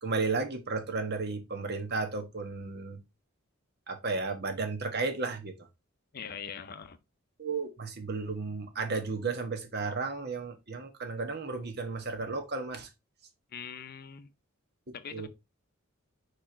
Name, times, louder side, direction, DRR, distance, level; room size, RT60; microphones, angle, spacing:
voice 1, 0.0-3.0 3.9-5.6 7.4-12.9 14.9-15.3, right 4 dB, 50° right, 1.3 m, -33 dB
voice 2, 6.1-7.0 13.5-14.3 14.9-15.3, left 7 dB, 45° left, 0.6 m, -42 dB
5.0 x 4.5 x 4.3 m
head